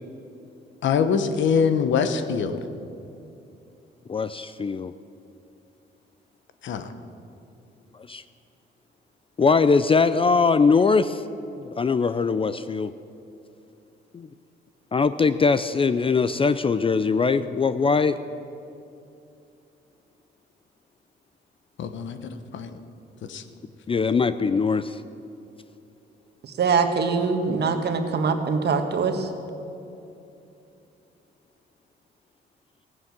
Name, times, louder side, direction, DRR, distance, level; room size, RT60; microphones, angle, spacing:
voice 1, 0.8-2.6 6.6-6.9 21.8-22.8 23.3-23.4, left 6 dB, 70° left, 9 dB, 1.0 m, -24 dB
voice 2, 4.1-4.9 8.1-8.2 9.4-11.2 11.6-12.9 14.1-14.3 14.9-18.2 23.9-25.0, left 4 dB, 30° left, 13 dB, 0.4 m, -21 dB
voice 3, 26.6-29.3, right 5 dB, 55° right, 6 dB, 1.5 m, -23 dB
15.5 x 9.5 x 7.3 m, 2.7 s
cardioid pair, 90°, 20 cm